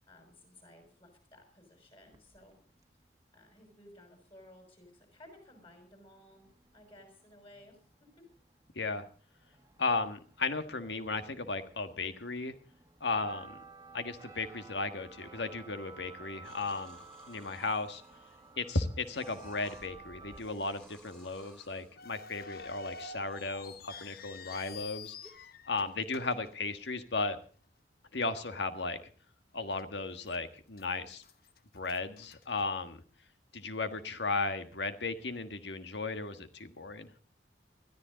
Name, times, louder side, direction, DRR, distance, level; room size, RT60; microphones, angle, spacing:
voice 1, 0.1-2.6 3.3-7.8 8.2-8.3, left 1 dB, 30° left, 4 dB, 6.0 m, -57 dB
sound 1, 2.0-2.8 5.9-6.0 6.2-20.4, right 4 dB, 20° right, 1.4 m, -54 dB
voice 2, 8.7-9.1 9.8-12.5 13.0-13.6 13.9-17.0 17.3-18.0 18.6-25.1 25.7-27.4 28.1-29.0 29.5-31.2 31.7-33.0 33.5-37.1, left 3 dB, 80° left, 9 dB, 1.5 m, -35 dB
sound 2, 16.4-18.7 19.0-19.9 20.3-22.0 22.6-24.5 25.2-25.3, equal, 5° left, 2.5 m, -57 dB
sound 3, 22.0-27.3 27.6-27.7 28.4-28.6 29.1-29.2 29.8-30.4 30.7-33.2, left 5 dB, 55° left, 1.0 m, -49 dB
21.0 x 13.5 x 4.0 m, 0.40 s
head